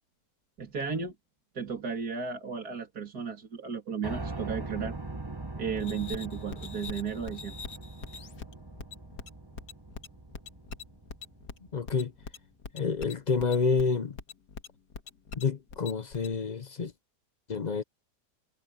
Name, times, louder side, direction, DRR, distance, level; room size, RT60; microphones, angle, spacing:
voice 1, 0.6-1.1 1.5-5.0 5.6-7.5, right 6 dB, 65° right, 3.3 m, -34 dB
Piano, 4.0-12.0, right 2 dB, 15° right, 1.1 m, -41 dB
sound 1, 5.8-16.4, left 5 dB, 80° left, 2.2 m, -44 dB
voice 2, 11.7-12.1 12.7-14.1 15.4-16.9 17.5-17.8, left 5 dB, 50° left, 0.5 m, -28 dB
omnidirectional pair, 1.7 m